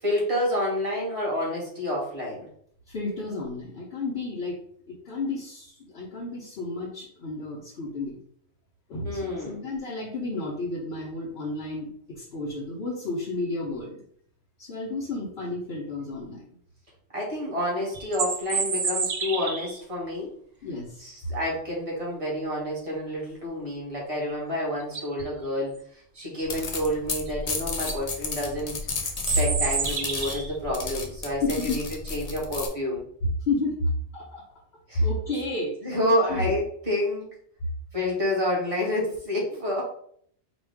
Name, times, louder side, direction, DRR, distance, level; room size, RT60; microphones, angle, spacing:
voice 1, 0.0-2.5 9.0-9.6 17.1-20.3 21.0-31.8 32.1-33.0 34.9-35.0 35.8-37.3 37.9-39.8, left 1 dB, 30° right, -5 dB, 1.5 m, -29 dB
voice 2, 2.9-4.6 4.9-8.2 8.9-14.0 14.6-16.5 20.6-21.0 31.4-31.8 33.2-34.6 34.9-35.7 36.3-36.5, left 2 dB, 60° left, -5 dB, 1.0 m, -31 dB
sound 1, 17.9-19.8 24.3-24.4 24.8-25.2 27.3-27.4 27.7-28.0 29.1-30.5, right 5 dB, 50° right, 0.5 m, -29 dB
sound 2, 26.4-32.7, left 4 dB, 40° left, 0.6 m, -33 dB
5.0 x 2.4 x 3.4 m, 0.64 s
omnidirectional pair, 1.2 m